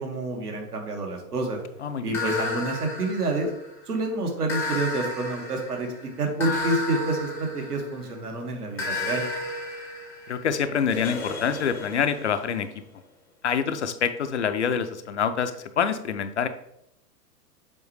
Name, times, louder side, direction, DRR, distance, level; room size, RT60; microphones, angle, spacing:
voice 1, 0.0-1.6 2.0-3.5 3.9-9.2, right 2 dB, 70° right, 2 dB, 1.6 m, -28 dB
voice 2, 1.8-2.1 10.3-12.7 13.4-16.5, left 7 dB, 50° left, 10 dB, 0.5 m, -26 dB
sound 1, 2.1-3.8 4.5-8.2 8.8-12.5, left 2 dB, 5° left, 0.6 m, -33 dB
7.3 x 4.6 x 3.1 m, 0.79 s
figure-of-eight pair, 110°, 49 cm